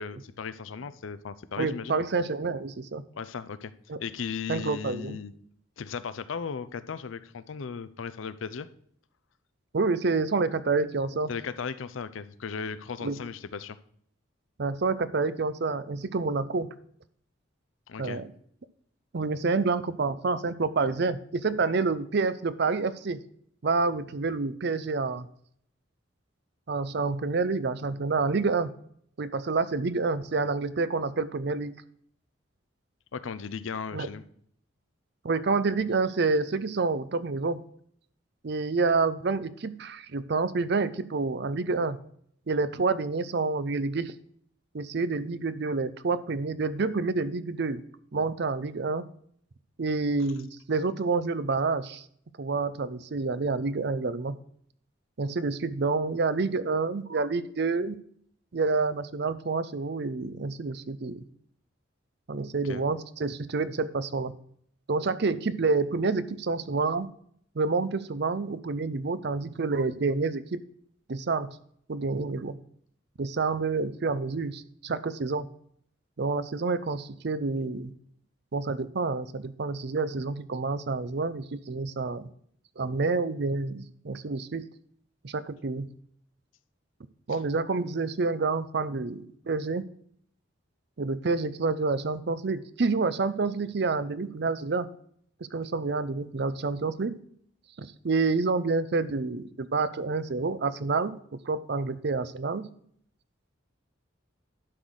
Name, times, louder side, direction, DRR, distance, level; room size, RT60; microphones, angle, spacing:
voice 1, 0.0-2.0 3.1-3.7 4.0-5.3 5.8-8.7 11.3-13.8 17.9-18.2 33.1-34.2 62.6-62.8 87.3-87.4, left 6 dB, 85° left, 14 dB, 0.5 m, -36 dB
voice 2, 1.6-3.0 3.9-4.0 4.5-5.2 9.7-11.3 13.0-13.2 14.6-16.7 18.0-18.3 19.1-23.2 23.6-25.3 26.7-28.7 29.2-31.8 33.9-34.1 35.2-37.6 38.4-42.0 42.5-44.1 44.7-47.8 48.1-49.0 49.8-52.0 52.4-54.4 55.2-58.0 58.5-61.2 62.3-64.3 64.9-67.1 67.6-70.6 71.1-71.6 71.9-72.6 73.2-75.5 76.2-77.9 78.5-82.3 82.8-84.7 85.2-85.9 87.3-89.8 91.0-94.9 95.5-97.2 97.8-101.1 101.5-102.7, right 4 dB, 55° right, 14 dB, 0.5 m, -28 dB
11.5 x 4.0 x 6.3 m, 0.64 s
head